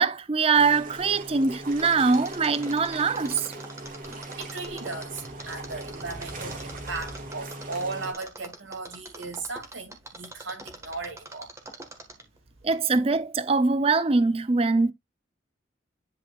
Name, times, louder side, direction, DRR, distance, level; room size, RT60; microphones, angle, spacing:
voice 1, 0.0-3.5 12.6-14.9, right 4 dB, 30° right, 0.5 m, -23 dB
sound 1, 0.5-8.1, right 2 dB, 45° right, 1.9 m, -40 dB
Mechanisms, 1.8-12.4 12.7-12.8, right 2 dB, 15° right, 1.5 m, -43 dB
voice 2, 4.4-11.5, right 3 dB, 90° right, 2.5 m, -36 dB
10.5 x 4.3 x 2.4 m
head